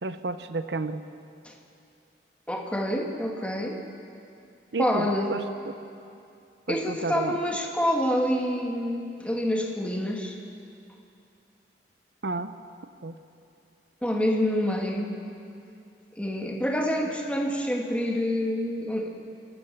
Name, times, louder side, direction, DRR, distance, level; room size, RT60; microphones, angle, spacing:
voice 1, 0.0-1.0 4.7-5.7 6.7-7.4 12.2-12.5 13.0-13.2, right 3 dB, 80° right, 10 dB, 0.8 m, -32 dB
voice 2, 2.5-3.8 4.8-5.4 6.7-10.4 14.0-15.1 16.1-19.1, equal, 5° left, 1 dB, 1.8 m, -27 dB
28.0 x 12.5 x 7.3 m, 2.6 s
head